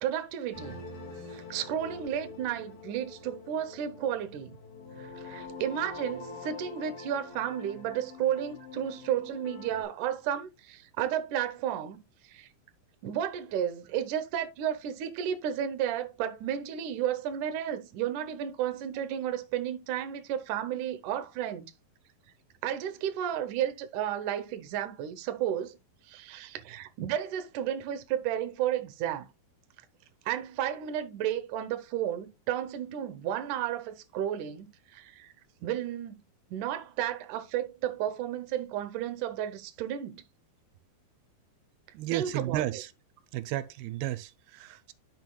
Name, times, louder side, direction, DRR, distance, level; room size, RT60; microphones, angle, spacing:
voice 1, 0.0-0.8 1.3-4.6 5.0-12.0 12.3-12.5 13.0-21.7 22.6-25.8 26.1-29.3 30.3-35.3 35.6-36.2 36.5-40.2 42.1-42.6, right 10 dB, 70° right, 2.1 m, -32 dB
sound 1, 0.5-9.8, left 3 dB, 55° left, 3.8 m, -45 dB
voice 2, 41.9-42.9 43.3-44.9, right 14 dB, 85° right, 2.5 m, -33 dB
10.5 x 6.3 x 2.3 m
omnidirectional pair, 4.4 m